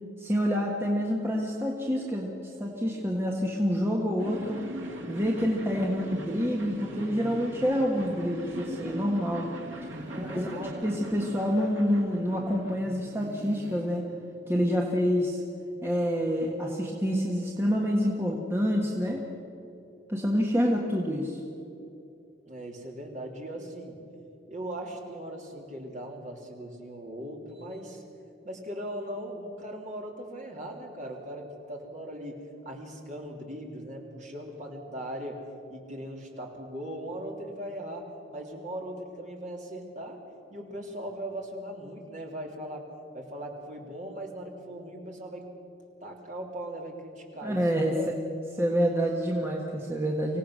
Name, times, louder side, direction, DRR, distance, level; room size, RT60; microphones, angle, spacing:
voice 1, 0.2-4.6 5.1-9.5 9.8-9.9 10.2-10.5 10.8-14.0 14.5-15.4 15.8-19.3 20.1-21.4 47.4-48.1 48.6-50.4, equal, 10° right, -1 dB, 1.4 m, -27 dB
sound 1, 4.2-12.8, right 1 dB, 75° right, 2.2 m, -40 dB
sound 2, 6.2-8.4 9.5-12.2 12.7-15.0, right 1 dB, 55° right, 3.6 m, -47 dB
voice 2, 10.1-10.9 22.5-24.0 24.5-28.0 28.4-32.3 32.6-40.2 40.5-42.9 43.1-45.5 46.0-48.1, right 1 dB, 40° right, 0 dB, 3.0 m, -39 dB
25.0 x 17.0 x 6.4 m, 2.8 s
head